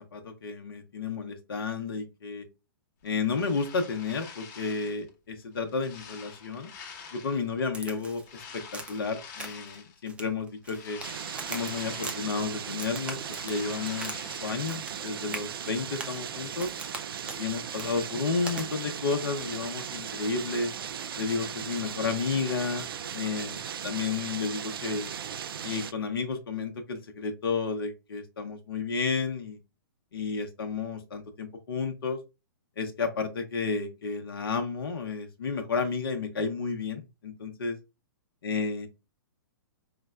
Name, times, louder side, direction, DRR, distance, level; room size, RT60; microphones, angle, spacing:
voice 1, 0.0-2.4 3.0-6.7 7.1-8.6 8.9-11.0 11.5-14.1 14.4-16.7 17.4-20.7 21.2-22.9 23.1-23.6 23.8-25.1 25.6-29.6 30.1-32.2 32.8-37.8 38.4-38.9, left 4 dB, 75° left, 5 dB, 0.7 m, -32 dB
sound 1, 3.0-5.1 5.5-7.6 8.2-10.0 10.4-12.7 12.9-14.9, left 6 dB, 30° left, 1.0 m, -47 dB
Crack, 7.7-8.3 8.7-9.1 9.4-9.8 10.1-11.1 11.4-12.2 12.7-14.2 14.4-15.0 15.3-15.5 16.0-16.2 16.6-17.0 17.3-17.4 17.8-17.9 18.5-18.7, right 2 dB, 10° right, 0.6 m, -40 dB
sound 2, 11.0-25.9, right 8 dB, 75° right, 0.4 m, -37 dB
4.8 x 2.1 x 2.3 m, 0.26 s
hypercardioid pair, 125°, 12 cm